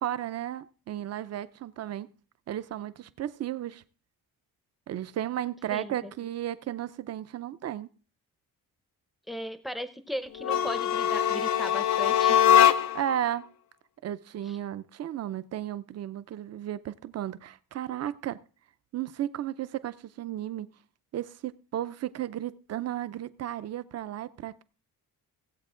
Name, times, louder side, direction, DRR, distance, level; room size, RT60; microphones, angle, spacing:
voice 1, 0.0-2.1 2.5-3.8 4.9-7.9 12.9-13.4 14.0-18.4 18.9-20.7 21.1-24.6, right 11 dB, 45° right, 0.5 m, -34 dB
voice 2, 5.7-6.1 9.3-12.5, equal, ahead, 0.6 m, -37 dB
sound 1, 10.4-13.1, left 10 dB, 50° left, 0.5 m, -22 dB
16.5 x 8.1 x 3.7 m
cardioid pair, 170°, 37 cm